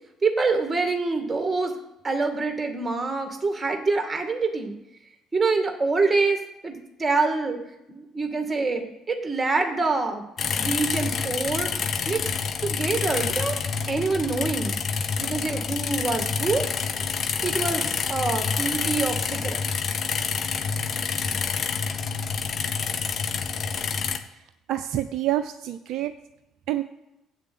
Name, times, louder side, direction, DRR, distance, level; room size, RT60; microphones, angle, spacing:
voice 1, 0.2-1.7 2.0-4.7 5.3-7.6 7.9-10.2 10.6-11.7 12.1-12.2 12.6-13.6 13.9-14.8 15.2-16.7 17.4-19.6, right 3 dB, 20° right, 5 dB, 2.2 m, -26 dB
sound 1, 10.4-24.2, left 5 dB, 45° left, 0.9 m, -27 dB
voice 2, 24.7-26.1 26.7-26.8, right 13 dB, 60° right, 10 dB, 0.5 m, -27 dB
8.0 x 6.7 x 8.2 m, 0.89 s
figure-of-eight pair, 50°, 0 cm